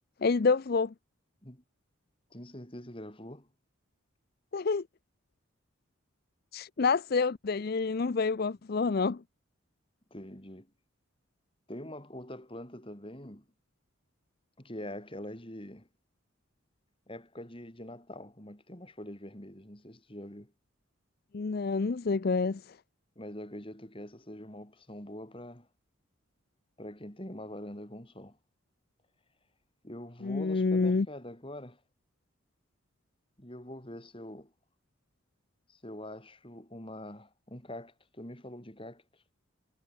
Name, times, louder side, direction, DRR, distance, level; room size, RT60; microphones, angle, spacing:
voice 1, 0.2-0.9 4.5-4.8 6.5-9.2 21.3-22.8 30.2-31.1, left 4 dB, 45° left, 0.5 m, -28 dB
voice 2, 2.3-3.5 10.1-10.7 11.7-13.4 14.6-15.9 17.1-20.5 23.2-25.7 26.8-28.4 29.8-31.8 33.4-34.5 35.7-39.2, left 1 dB, 25° left, 4.0 m, -44 dB
head